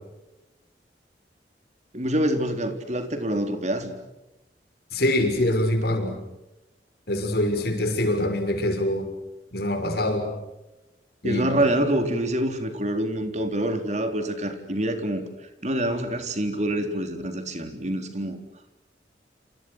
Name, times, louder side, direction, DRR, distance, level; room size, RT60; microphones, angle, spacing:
voice 1, 1.9-3.9 11.2-15.2 15.6-18.4, right 1 dB, 40° right, 6 dB, 3.9 m, -26 dB
voice 2, 4.9-6.2 7.1-9.1 9.5-10.3 11.2-11.5, left 1 dB, 60° left, 6 dB, 6.3 m, -24 dB
29.0 x 28.0 x 6.5 m, 0.98 s
head